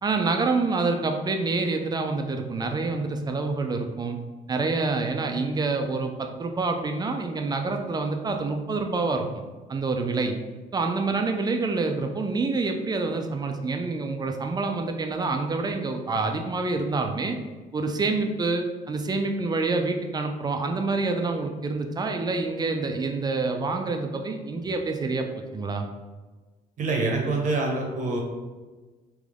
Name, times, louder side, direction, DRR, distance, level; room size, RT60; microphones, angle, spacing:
voice 1, 0.0-4.2 4.5-9.4 9.7-10.4 10.7-17.4 17.7-25.3 25.5-25.9, right 3 dB, 25° right, 5 dB, 0.4 m, -27 dB
voice 2, 26.8-28.2, right 3 dB, 50° right, 0 dB, 0.8 m, -25 dB
3.3 x 3.1 x 3.7 m, 1.3 s
cardioid pair, 110°, 17 cm